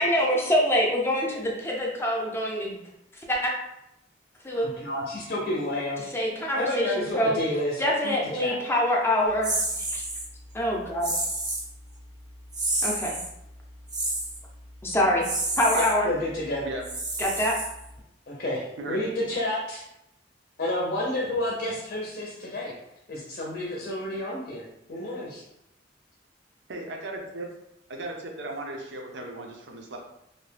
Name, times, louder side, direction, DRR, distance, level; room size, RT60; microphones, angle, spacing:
voice 1, 0.0-2.8 3.3-3.5 4.4-4.8 6.1-7.4 7.8-10.0 10.5-11.1 12.8-13.2 14.8-15.2 15.6-16.1 17.2-17.5, equal, 15° left, -2 dB, 0.5 m, -25 dB
voice 2, 4.5-6.0 6.6-8.6 15.7-16.7 18.3-19.8 20.6-22.7 23.1-24.6 24.9-25.4, left 1 dB, 55° left, -3 dB, 0.6 m, -30 dB
sound 1, 9.4-10.3 11.0-11.7 12.5-13.3 13.9-14.4 15.2-15.9 16.8-18.0, right 2 dB, 20° right, 0.6 m, -29 dB
voice 3, 26.7-27.5 27.9-30.0, right 2 dB, 70° right, 1 dB, 0.6 m, -36 dB
2.7 x 2.2 x 3.2 m, 0.82 s
head